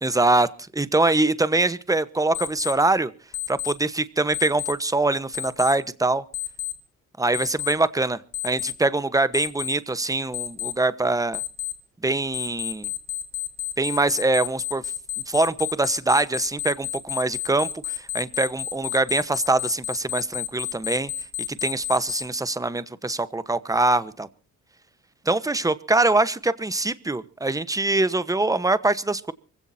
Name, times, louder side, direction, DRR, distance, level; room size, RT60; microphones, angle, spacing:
voice 1, 0.0-0.5 0.7-3.1 3.5-6.2 7.2-11.4 12.0-12.9 13.8-14.8 15.3-21.1 21.5-24.3 25.2-29.3, right 2 dB, 10° right, 15 dB, 1.1 m, -23 dB
Alarm, 2.3-2.7 3.3-3.7 4.3-4.7 5.3-5.7 6.3-6.7 7.3-7.7 8.3-8.7 9.3-9.7 10.3-10.7 11.3-11.7 12.3-22.2, left 13 dB, 45° left, 4.1 m, -30 dB
25.0 x 16.0 x 2.8 m, 0.37 s
cardioid pair, 90°, 32 cm